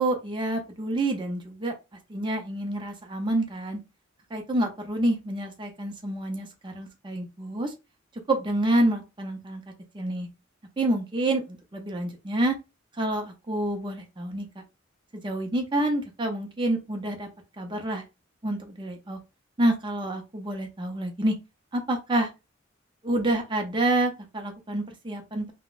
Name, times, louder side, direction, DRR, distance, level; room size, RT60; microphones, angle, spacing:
voice 1, 0.0-1.7 2.1-3.8 4.3-7.7 8.3-9.6 9.9-10.3 10.8-12.6 13.0-14.5 15.2-17.3 17.6-18.0 18.4-19.2 19.6-21.4 21.7-22.3 23.0-25.5, right 1 dB, 25° right, 0.5 m, -28 dB
3.8 x 2.1 x 2.4 m
head